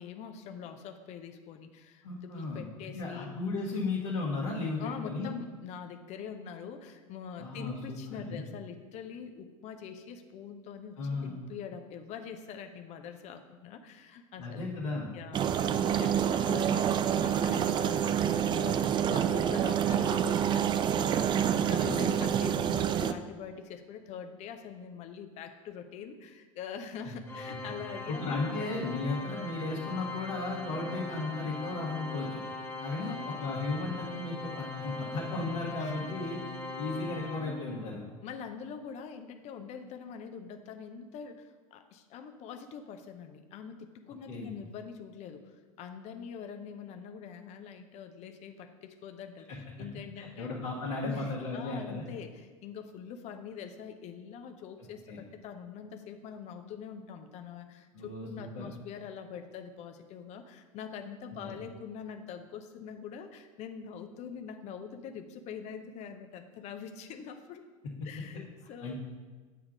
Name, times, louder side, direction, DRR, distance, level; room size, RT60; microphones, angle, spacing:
voice 1, 0.0-3.3 3.7-3.9 4.8-28.7 33.0-33.6 35.8-36.1 38.2-50.5 51.0-67.6 68.0-68.9, left 7 dB, 40° left, 7 dB, 0.6 m, -44 dB
voice 2, 2.0-2.6 2.9-5.3 7.4-8.4 11.0-11.4 14.4-15.1 21.6-22.1 27.0-27.2 28.1-32.4 32.8-36.4 36.8-38.0 44.3-44.5 49.5-49.6 50.2-52.0 55.1-55.2 57.9-58.7 61.3-61.6 67.8-68.1 68.8-68.9, left 3 dB, 65° left, -7 dB, 1.5 m, -35 dB
sound 1, 15.3-23.1, right 9 dB, 25° right, 0.4 m, -27 dB
Organ, 27.3-38.0, left 3 dB, 15° left, 1.5 m, -41 dB
8.4 x 3.6 x 6.0 m, 1.4 s
figure-of-eight pair, 75°, 17 cm